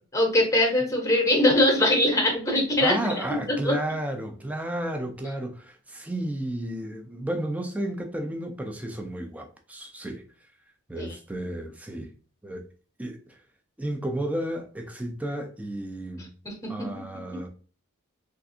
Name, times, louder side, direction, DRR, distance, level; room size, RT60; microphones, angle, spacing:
voice 1, 0.1-3.0 3.3-3.8 11.0-11.2 16.4-16.9, left 1 dB, 15° left, 0.8 m, -22 dB
voice 2, 2.8-10.2 10.9-12.1 12.4-12.7 13.0-13.4 13.8-16.3 16.7-17.5, right 1 dB, 5° right, 0.4 m, -32 dB
3.3 x 2.4 x 2.6 m
head